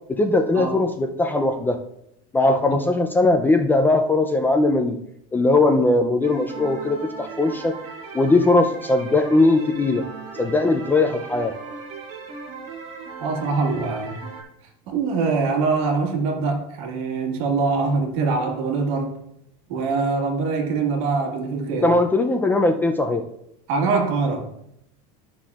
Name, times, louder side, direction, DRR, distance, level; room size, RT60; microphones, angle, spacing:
voice 1, 0.1-1.8 2.3-5.0 5.3-7.8 8.1-10.0 10.4-11.5 21.8-23.2, left 2 dB, 10° left, 5 dB, 0.4 m, -19 dB
sound 1, 6.2-14.4, right 4 dB, 35° right, 1.8 m, -38 dB
voice 2, 13.2-14.2 14.9-19.2 19.7-21.9 23.7-24.5, right 4 dB, 65° right, 2 dB, 1.7 m, -23 dB
11.5 x 5.9 x 2.4 m, 0.78 s
supercardioid pair, 145°, 19 cm